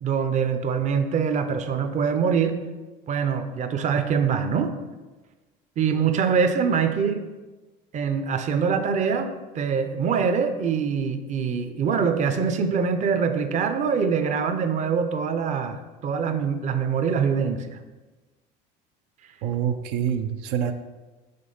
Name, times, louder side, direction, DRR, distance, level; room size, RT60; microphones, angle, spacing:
voice 1, 0.0-2.6 3.1-4.7 5.8-7.2 7.9-17.8, right 6 dB, 35° right, 8 dB, 0.5 m, -24 dB
voice 2, 19.4-20.7, right 9 dB, 85° right, 6 dB, 0.5 m, -26 dB
5.1 x 3.6 x 5.5 m, 1.2 s
supercardioid pair, 105°, 20 cm